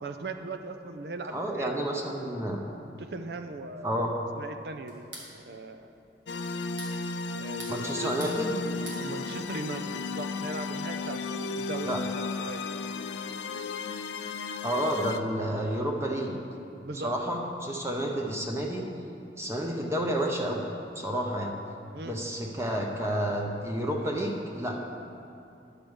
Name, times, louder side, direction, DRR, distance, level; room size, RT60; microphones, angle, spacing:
voice 1, 0.0-1.8 3.0-4.1 4.4-5.1 5.3-5.9 7.3-8.1 8.9-12.7 16.8-17.1 21.9-22.2, right 3 dB, 60° right, 7 dB, 0.5 m, -39 dB
voice 2, 1.3-2.6 3.8-4.1 7.7-8.6 11.8-12.3 14.6-16.4 17.0-18.8 19.4-20.6 21.0-21.5 22.1-24.8, equal, 15° right, 0 dB, 0.7 m, -30 dB
sound 1, 4.9-5.3 6.5-7.0 7.4-8.4 8.6-9.0, right 2 dB, 90° right, 2.0 m, -44 dB
sound 2, 6.3-15.2, left 4 dB, 80° left, 0.4 m, -34 dB
10.5 x 5.1 x 6.3 m, 2.6 s
head